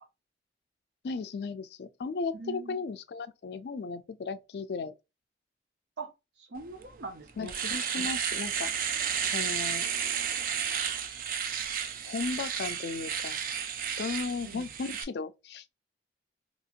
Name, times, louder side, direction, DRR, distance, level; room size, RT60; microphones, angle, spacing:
voice 1, 1.0-4.9 7.4-8.7 9.2-9.9 12.1-13.4 14.0-15.7, left 4 dB, 65° left, 0.4 m, -35 dB
voice 2, 2.3-2.9 6.0-6.1 6.4-7.5 14.4-14.7, right 3 dB, 90° right, 0.7 m, -42 dB
Domestic sounds home sounds, 6.8-6.9 7.3-15.0, right 8 dB, 50° right, 0.4 m, -32 dB
2.8 x 2.8 x 2.4 m
head